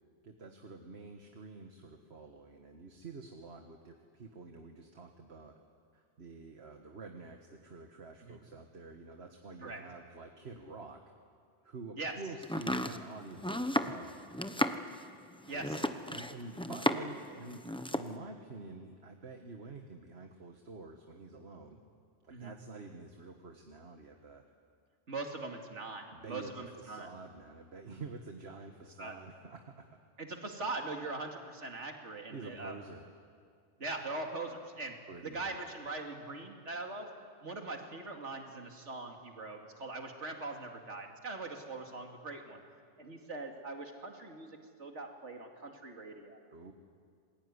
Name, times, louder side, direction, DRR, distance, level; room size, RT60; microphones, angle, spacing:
voice 1, 0.2-5.5 5.9-11.0 11.6-14.3 15.4-17.6 17.9-21.8 22.2-24.4 26.1-30.0 32.3-33.1 35.1-35.6 46.5-46.7, right 3 dB, 65° right, 4 dB, 1.8 m, -48 dB
Domestic sounds home sounds, 12.4-17.2 17.5-18.1, left 1 dB, 5° left, 0.8 m, -34 dB
voice 2, 15.5-15.8 22.3-22.5 25.1-27.1 29.0-29.1 30.2-32.8 33.8-35.0 35.2-37.1 37.4-42.6 43.0-46.4, right 3 dB, 80° right, 3 dB, 2.8 m, -41 dB
27.0 x 21.0 x 9.8 m, 2.2 s
omnidirectional pair, 1.2 m